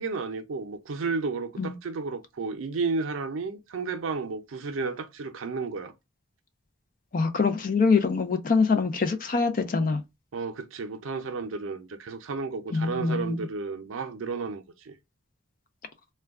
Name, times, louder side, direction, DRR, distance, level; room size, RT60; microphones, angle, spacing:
voice 1, 0.0-5.9 10.3-15.0, right 4 dB, 85° right, 0.5 m, -32 dB
voice 2, 7.1-10.0 12.7-13.4, left 4 dB, 45° left, 0.4 m, -24 dB
2.2 x 2.2 x 3.5 m
head